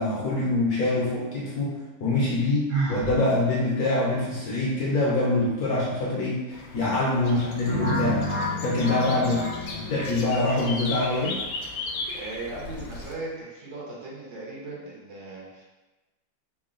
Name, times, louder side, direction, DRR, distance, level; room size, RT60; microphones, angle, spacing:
voice 1, 0.0-8.2 8.6-9.4 9.7-11.4, left 2 dB, 60° left, -5 dB, 1.1 m, -25 dB
Sigh, 2.7-3.2, right 4 dB, 60° right, 1.0 m, -27 dB
sound 1, 6.5-13.1, left 3 dB, 85° left, 0.7 m, -37 dB
sound 2, 7.7-10.5, left 1 dB, 10° right, 0.5 m, -30 dB
voice 2, 9.1-9.5 12.1-15.6, right 2 dB, 75° right, -6 dB, 1.7 m, -38 dB
3.7 x 2.2 x 3.7 m, 1.1 s
omnidirectional pair, 2.1 m